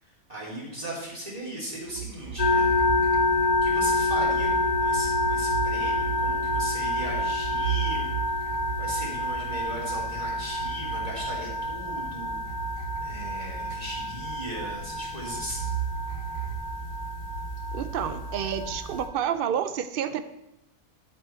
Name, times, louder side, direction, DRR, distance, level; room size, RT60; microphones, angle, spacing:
voice 1, 0.0-2.8 3.6-4.5 4.8-8.1 8.7-12.4 13.0-15.7, right 1 dB, 25° right, -5 dB, 3.2 m, -37 dB
sound 1, 1.9-12.2 12.5-14.3 15.5-16.6, right 7 dB, 70° right, 1.3 m, -36 dB
sound 2, 2.4-19.1, left 2 dB, 75° left, 1.3 m, -28 dB
voice 2, 17.7-20.2, right 9 dB, 85° right, 11 dB, 0.5 m, -29 dB
10.5 x 8.0 x 4.5 m, 0.90 s
omnidirectional pair, 1.6 m